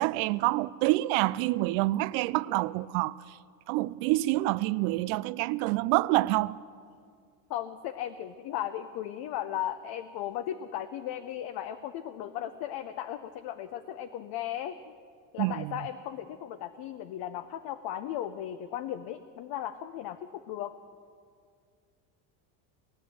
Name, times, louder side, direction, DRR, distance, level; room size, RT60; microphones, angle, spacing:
voice 1, 0.0-3.2 3.7-6.6 15.4-15.7, right 19 dB, 70° right, 0.6 m, -27 dB
voice 2, 7.5-14.9 15.3-20.7, left 11 dB, 55° left, 0.8 m, -36 dB
19.5 x 9.2 x 7.8 m
supercardioid pair, 115°, 48 cm